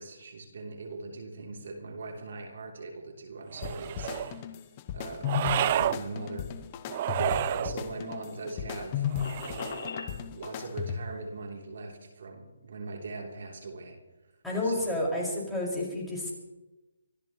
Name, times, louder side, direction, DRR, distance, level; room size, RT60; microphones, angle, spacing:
voice 1, 0.0-4.6 4.9-9.1 9.4-14.0 14.6-15.0, right 3 dB, 65° right, 1 dB, 3.3 m, -40 dB
sound 1, 3.5-4.4 5.2-6.0 6.9-7.8 9.1-9.9, right 12 dB, 35° right, 0.4 m, -30 dB
sound 2, 3.6-11.2, left 9 dB, 30° left, 0.9 m, -35 dB
sound 3, 7.3-10.1, left 5 dB, 45° left, 3.3 m, -42 dB
voice 2, 14.4-16.3, left 1 dB, ahead, -6 dB, 5.7 m, -30 dB
25.5 x 15.5 x 3.2 m, 1.0 s
hypercardioid pair, 150°, 0 cm